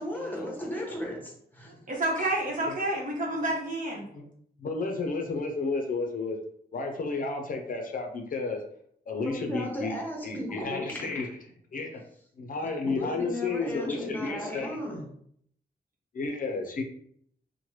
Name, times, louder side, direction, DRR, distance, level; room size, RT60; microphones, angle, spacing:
voice 1, 0.0-1.7 9.2-11.3 12.8-15.0, left 1 dB, 10° left, -1 dB, 0.8 m, -35 dB
voice 2, 1.9-4.0, right 1 dB, 50° right, -1 dB, 0.9 m, -29 dB
voice 3, 4.6-6.4 6.7-8.6 9.1-10.0 10.2-11.3 11.7-12.0 12.4-14.8 16.1-16.8, left 3 dB, 55° left, 4 dB, 0.5 m, -32 dB
3.0 x 2.1 x 3.0 m, 0.65 s
cardioid pair, 95°, 17 cm